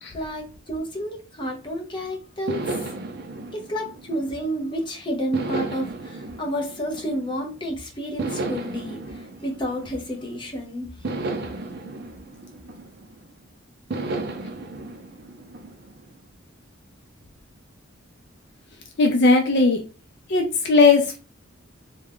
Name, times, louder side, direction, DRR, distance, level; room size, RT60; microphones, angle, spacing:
voice 1, 0.1-2.9 3.5-11.0, equal, 25° left, -1 dB, 0.8 m, -30 dB
sound 1, 2.5-4.7 5.3-7.6 8.2-10.4 11.0-13.3 13.9-16.2, right 2 dB, 50° right, 0.5 m, -34 dB
voice 2, 19.0-19.8 20.3-21.2, left 3 dB, 55° left, 4 dB, 0.5 m, -17 dB
3.5 x 2.3 x 3.5 m, 0.33 s
head